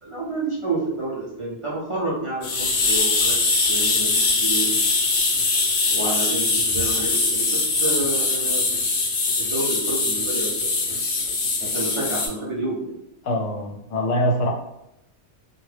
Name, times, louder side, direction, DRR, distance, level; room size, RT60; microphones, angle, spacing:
voice 1, 0.0-4.8 5.9-8.7 9.4-10.8 11.6-12.9, right 2 dB, 50° right, -7 dB, 0.4 m, -29 dB
sound 1, 2.4-12.3, left 3 dB, 60° left, 0.5 m, -22 dB
voice 2, 13.2-14.5, equal, 85° left, 1 dB, 1.0 m, -23 dB
2.1 x 2.1 x 3.2 m, 0.83 s
omnidirectional pair, 1.3 m